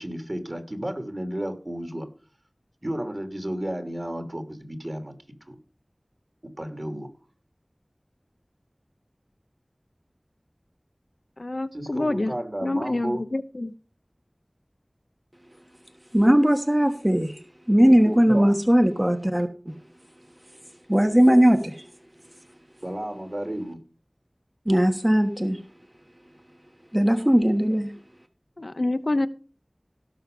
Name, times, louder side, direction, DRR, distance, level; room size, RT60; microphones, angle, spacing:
voice 1, 0.0-2.1 2.8-5.1 5.5-5.6 6.6-7.1 11.7-13.2 17.9-18.6 22.8-23.8, right 1 dB, 45° right, 2.9 m, -32 dB
voice 2, 11.4-12.3 12.6-13.7 28.6-29.3, left 2 dB, 70° left, 0.9 m, -27 dB
voice 3, 16.1-19.8 20.9-21.9 24.7-25.6 26.9-27.9, equal, 20° right, 1.2 m, -19 dB
17.0 x 6.4 x 5.3 m
wide cardioid pair, 40°, 0 cm